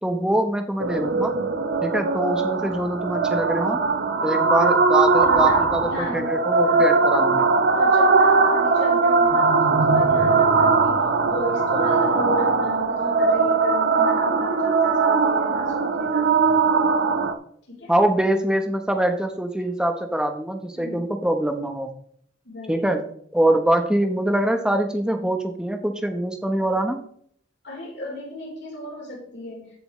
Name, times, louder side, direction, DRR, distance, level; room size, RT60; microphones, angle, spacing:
voice 1, 0.0-1.3 1.8-3.8 4.2-7.5 17.9-21.9 22.7-23.0 23.3-27.0, right 1 dB, 5° right, 5 dB, 1.0 m, -24 dB
sound 1, 0.8-17.3, right 4 dB, 55° right, 0.8 m, -20 dB
voice 2, 5.2-6.9 7.7-16.6 17.7-17.9 20.7-21.0 22.4-22.9 27.6-29.7, left 1 dB, 65° left, -2 dB, 3.9 m, -35 dB
14.5 x 7.2 x 3.2 m, 0.64 s
head